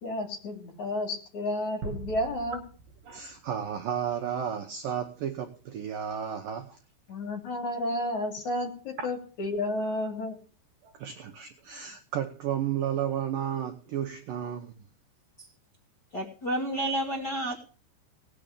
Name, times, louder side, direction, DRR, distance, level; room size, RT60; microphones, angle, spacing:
voice 1, 0.0-2.6 7.1-10.4, left 1 dB, 45° left, 1 dB, 3.7 m, -31 dB
sound 1, 1.8-4.2, right 4 dB, 50° right, 3.7 m, -42 dB
voice 2, 3.0-6.8 9.0-9.1 10.8-14.7, right 9 dB, 85° right, 4 dB, 1.9 m, -33 dB
voice 3, 16.1-17.6, right 1 dB, 65° left, -1 dB, 1.0 m, -30 dB
18.5 x 6.8 x 6.8 m, 0.41 s
omnidirectional pair, 5.6 m